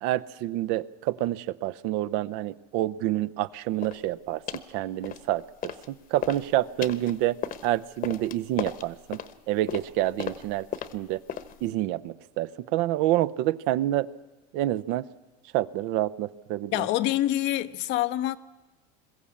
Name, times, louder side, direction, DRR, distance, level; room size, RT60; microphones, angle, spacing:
voice 1, 0.0-7.4 7.6-9.2 9.5-10.7 10.9-11.2 11.6-14.1 14.5-15.1 15.5-16.9, right 14 dB, 65° right, 0.7 m, -28 dB
sound 1, 3.8-4.0 4.5-4.7 5.0-5.9 6.2-11.7, left 9 dB, 40° left, 1.1 m, -36 dB
voice 2, 16.7-18.4, left 14 dB, 60° left, 0.8 m, -26 dB
22.0 x 14.5 x 8.5 m
supercardioid pair, 105°, 21 cm